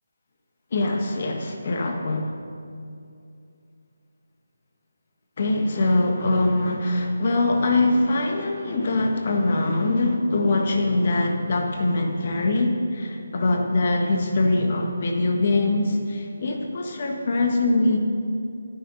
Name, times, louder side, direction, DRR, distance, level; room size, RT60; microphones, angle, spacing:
voice 1, 0.7-2.3 5.4-18.0, left 2 dB, 45° left, 3 dB, 1.7 m, -23 dB
15.5 x 10.5 x 4.2 m, 2.5 s
figure-of-eight pair, 155°, 0 cm